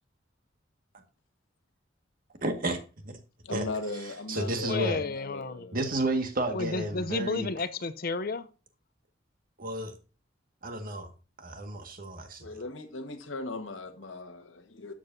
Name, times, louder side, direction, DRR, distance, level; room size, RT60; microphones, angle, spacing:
voice 1, 2.4-2.8 3.0-3.2 3.5-3.7 4.0-5.0 5.7-7.5 9.6-9.9 10.6-11.1 11.4-12.6 14.0-14.2, right 1 dB, 50° right, 1.7 m, -32 dB
voice 2, 3.4-5.8 12.4-14.9, left 2 dB, 90° left, 1.4 m, -38 dB
voice 3, 4.7-5.7 6.5-8.5, left 3 dB, 50° left, 0.6 m, -32 dB
12.0 x 7.8 x 2.7 m
head